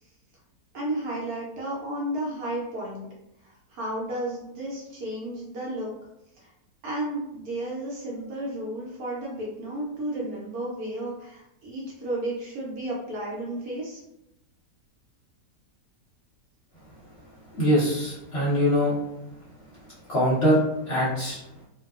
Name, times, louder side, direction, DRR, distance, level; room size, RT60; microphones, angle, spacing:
voice 1, 0.7-3.1 3.4-5.9 6.4-6.5 6.8-14.0, right 1 dB, 65° right, -4 dB, 1.0 m, -33 dB
voice 2, 17.5-19.0 20.1-20.6 20.9-21.4, equal, 45° left, -9 dB, 0.9 m, -22 dB
2.6 x 2.2 x 2.3 m, 0.88 s
omnidirectional pair, 1.9 m